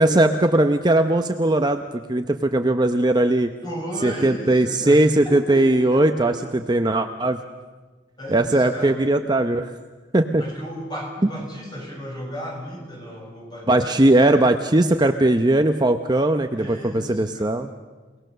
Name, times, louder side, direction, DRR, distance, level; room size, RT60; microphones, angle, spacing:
voice 1, 0.0-3.5 4.0-7.4 8.3-9.7 10.1-10.4 13.7-17.7, right 1 dB, 25° right, 6 dB, 0.8 m, -19 dB
voice 2, 3.6-6.4 8.2-9.1 10.4-14.0 16.5-17.5, equal, 25° left, 0 dB, 6.4 m, -34 dB
29.0 x 19.5 x 6.8 m, 1.3 s
head